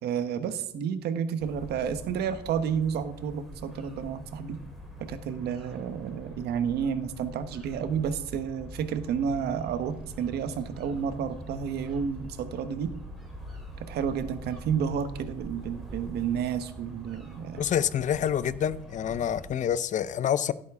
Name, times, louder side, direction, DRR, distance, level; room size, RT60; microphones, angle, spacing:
voice 1, 0.0-4.6 5.0-12.9 13.9-17.6, right 7 dB, 75° right, 1.2 m, -31 dB
sound 1, 1.4-19.5, equal, ahead, 3.9 m, -46 dB
sound 2, 6.2-16.3, right 3 dB, 30° right, 1.6 m, -46 dB
voice 2, 17.6-20.5, left 9 dB, 45° left, 0.5 m, -27 dB
16.0 x 8.4 x 3.7 m
cardioid pair, 110°, 17 cm